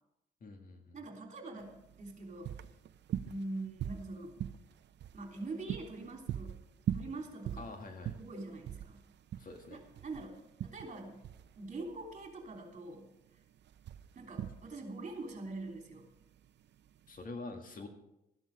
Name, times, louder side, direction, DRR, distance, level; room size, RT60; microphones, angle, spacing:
voice 1, 0.4-1.0 7.6-8.2 9.4-9.8 17.1-17.9, left 3 dB, 45° left, 5 dB, 1.8 m, -46 dB
voice 2, 0.9-2.5 3.2-4.4 5.1-6.6 6.9-7.7 8.2-9.0 9.7-11.2 11.6-13.1 14.1-16.1, right 2 dB, 40° right, 2 dB, 3.3 m, -44 dB
sound 1, 1.6-17.2, right 10 dB, 60° right, 0.6 m, -43 dB
13.5 x 11.0 x 4.9 m, 0.88 s
cardioid pair, 90°, 20 cm